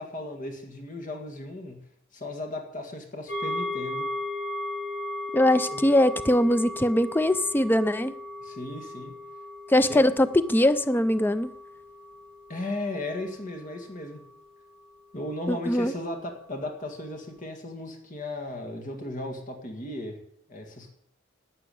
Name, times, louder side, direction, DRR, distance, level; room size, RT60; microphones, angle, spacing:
voice 1, 0.0-1.8 2.1-4.1 5.7-5.9 8.4-9.1 9.9-10.0 12.5-14.2 15.1-20.2 20.5-20.9, left 1 dB, 40° left, 3 dB, 2.0 m, -36 dB
sound 1, 3.3-14.9 15.3-15.4, left 2 dB, 55° left, 5.7 m, -37 dB
voice 2, 5.3-8.1 9.7-11.5 15.5-15.9, left 1 dB, 10° left, 13 dB, 0.4 m, -22 dB
12.0 x 9.6 x 8.5 m, 0.74 s
head